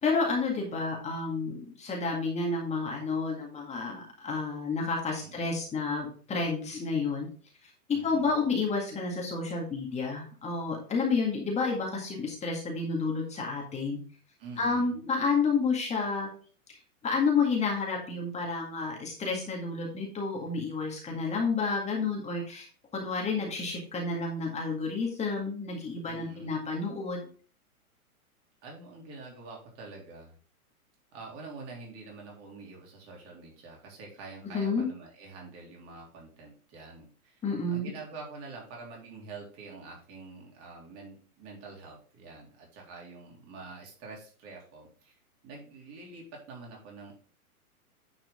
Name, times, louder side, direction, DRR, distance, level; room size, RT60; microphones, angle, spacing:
voice 1, 0.0-7.3 7.9-14.0 14.6-16.3 17.0-22.7 22.9-27.2 34.5-34.9 37.4-37.9, left 4 dB, 15° left, 0 dB, 1.9 m, -30 dB
voice 2, 5.2-5.6 7.9-8.3 14.4-14.9 26.0-26.5 28.6-30.4 31.1-45.2 45.4-47.1, right 3 dB, 30° right, -1 dB, 3.4 m, -46 dB
9.7 x 4.9 x 3.7 m, 0.42 s
hypercardioid pair, 135°, 45 cm